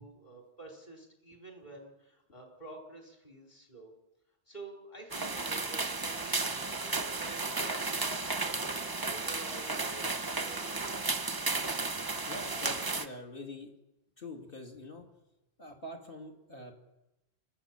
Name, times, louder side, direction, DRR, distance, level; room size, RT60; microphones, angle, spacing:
voice 1, 0.0-3.9 4.5-11.2, right 2 dB, 45° left, 1 dB, 4.3 m, -50 dB
sound 1, 5.1-13.1, right 3 dB, 25° right, 0.7 m, -34 dB
voice 2, 12.3-13.7 14.2-15.1 15.6-16.7, left 2 dB, 60° left, 2 dB, 3.1 m, -45 dB
29.0 x 13.5 x 7.4 m, 0.95 s
omnidirectional pair, 1.1 m